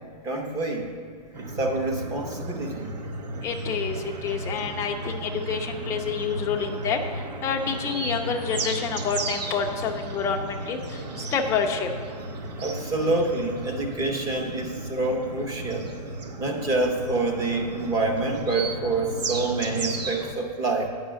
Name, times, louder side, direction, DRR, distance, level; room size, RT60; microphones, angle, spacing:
voice 1, 0.2-0.9 1.6-2.9 12.6-15.9 16.4-20.9, right 2 dB, 15° right, 2 dB, 0.8 m, -27 dB
sound 1, 1.3-20.3, right 2 dB, 75° right, 1.0 m, -34 dB
voice 2, 3.4-4.0 4.2-7.0 7.4-10.8 11.3-11.9, left 6 dB, 15° left, 3 dB, 0.5 m, -28 dB
9.1 x 5.5 x 6.3 m, 2.1 s
hypercardioid pair, 155°, 21 cm